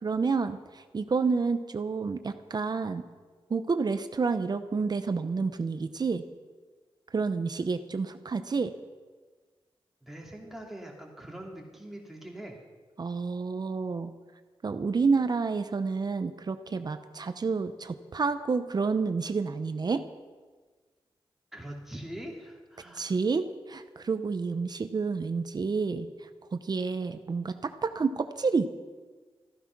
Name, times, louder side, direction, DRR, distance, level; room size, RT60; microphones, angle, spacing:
voice 1, 0.0-3.0 3.5-6.2 7.1-8.7 13.0-14.1 14.6-20.0 23.0-26.1 26.6-28.7, right 4 dB, 45° right, 10 dB, 0.7 m, -29 dB
voice 2, 10.0-12.6 21.5-23.1, right 1 dB, 5° right, -1 dB, 2.9 m, -43 dB
14.5 x 14.0 x 6.0 m, 1.4 s
wide cardioid pair, 120°, 10 cm